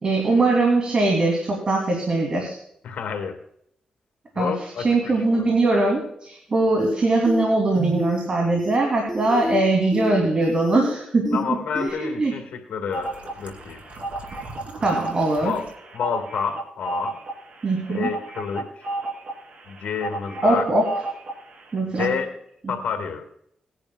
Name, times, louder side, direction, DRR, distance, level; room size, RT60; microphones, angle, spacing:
voice 1, 0.0-2.6 4.4-11.3 11.7-12.3 14.8-15.5 17.6-18.1 20.4-20.8 21.7-22.2, right 2 dB, 45° right, 0 dB, 2.8 m, -21 dB
voice 2, 2.8-3.4 4.3-5.5 11.3-13.8 15.4-15.7 15.9-17.2 17.9-18.9 19.7-20.7 22.0-22.3 22.7-23.2, left 6 dB, 80° left, 4 dB, 1.8 m, -29 dB
sound 1, 6.8-6.9 7.2-7.4 7.7-8.3 8.6-8.8 9.1-9.6 9.9-10.1 10.4-10.9 11.2-11.4 11.7-11.9, left 2 dB, 10° left, 4.7 m, -28 dB
sound 2, 12.9-21.6 22.0-22.1, right 2 dB, 60° right, 2.9 m, -32 dB
20.0 x 10.5 x 2.3 m, 0.73 s
cardioid pair, 70°, 2 cm